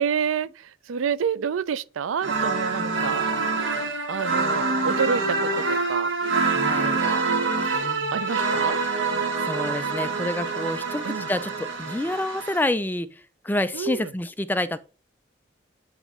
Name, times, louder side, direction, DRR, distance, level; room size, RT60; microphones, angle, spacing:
voice 1, 0.0-3.2 4.1-6.1 6.7-7.2 8.1-8.8 11.0-11.3 13.7-14.1, right 7 dB, 85° right, 0.4 m, -28 dB
sound 1, 2.2-12.6, right 4 dB, 70° right, 1.7 m, -26 dB
voice 2, 2.8-3.2 6.5-7.0 7.7-8.2 9.4-14.8, left 1 dB, 10° left, 0.4 m, -29 dB
9.0 x 3.0 x 5.3 m
head